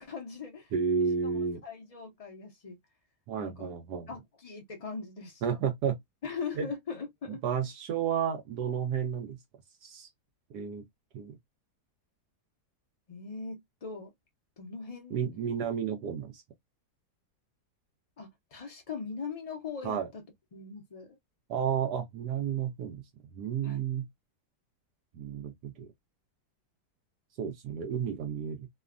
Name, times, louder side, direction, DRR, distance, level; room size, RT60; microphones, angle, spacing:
voice 1, 0.0-2.8 3.4-3.7 4.1-5.6 6.2-7.4 13.1-14.1 14.6-15.3 18.2-20.2 20.5-21.2 23.6-23.8, left 5 dB, 65° left, 0.3 m, -41 dB
voice 2, 0.7-1.6 3.3-4.1 5.4-6.0 6.6-6.7 7.4-9.4 9.8-10.1 10.5-10.8 11.1-11.4 15.1-16.4 19.8-20.1 21.5-23.0 23.3-24.1 25.1-25.9 27.4-28.7, right 7 dB, 75° right, 1.2 m, -31 dB
3.1 x 2.1 x 2.4 m
omnidirectional pair, 1.8 m